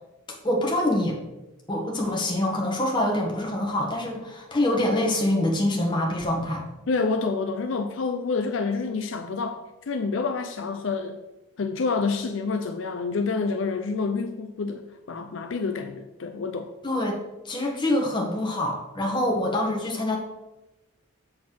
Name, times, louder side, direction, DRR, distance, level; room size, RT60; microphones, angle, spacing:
voice 1, 0.4-1.2 1.7-6.6 16.8-17.2 17.4-20.2, left 1 dB, 20° left, -1 dB, 1.4 m, -25 dB
voice 2, 6.9-9.6 9.9-11.2 11.6-16.7, left 4 dB, 60° left, 6 dB, 0.5 m, -28 dB
7.6 x 4.2 x 5.9 m, 1.0 s
head